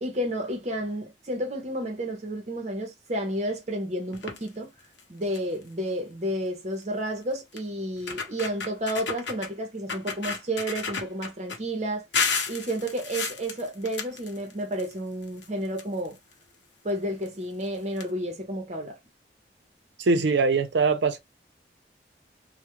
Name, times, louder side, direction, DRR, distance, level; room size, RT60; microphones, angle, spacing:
voice 1, 0.0-4.7 5.1-12.0 12.5-16.2 16.8-19.0, right 1 dB, 40° right, 0.7 m, -31 dB
sound 1, 4.1-4.5 5.0-5.1 5.3-5.6 6.8-6.9 7.6-7.7 8.0-9.5 9.9-11.6 12.1-14.9 15.2-16.3 17.2-17.3 17.6-17.7 18.0-18.1, left 5 dB, 85° left, 0.7 m, -32 dB
voice 2, 20.0-21.2, right 4 dB, 85° right, 0.5 m, -22 dB
2.3 x 2.1 x 2.9 m
head